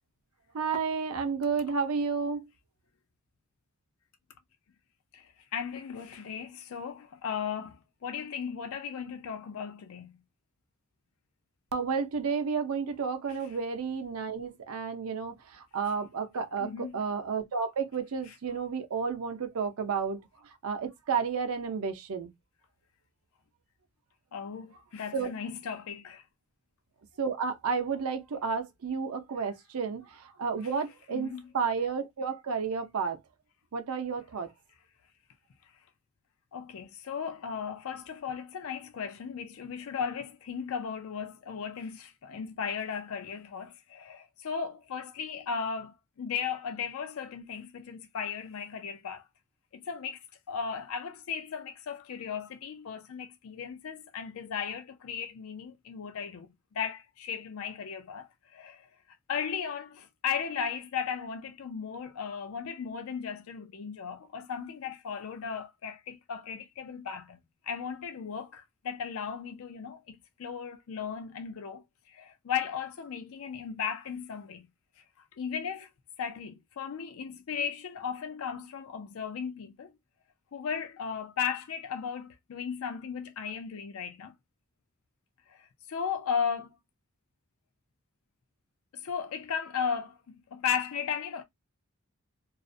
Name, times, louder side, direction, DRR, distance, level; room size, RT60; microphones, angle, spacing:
voice 1, 0.5-2.4 11.7-20.2 20.6-22.3 25.1-25.3 27.2-33.2 33.7-34.5, right 5 dB, 85° right, 0.5 m, -31 dB
voice 2, 5.1-10.2 16.6-17.0 24.3-26.2 31.1-31.4 36.5-49.2 49.7-50.2 50.5-56.5 56.7-58.9 59.3-67.4 67.6-74.7 75.2-75.9 76.2-79.9 80.5-84.3 85.5-86.7 88.9-91.4, left 7 dB, 70° left, 0.4 m, -36 dB
2.4 x 2.0 x 2.5 m
head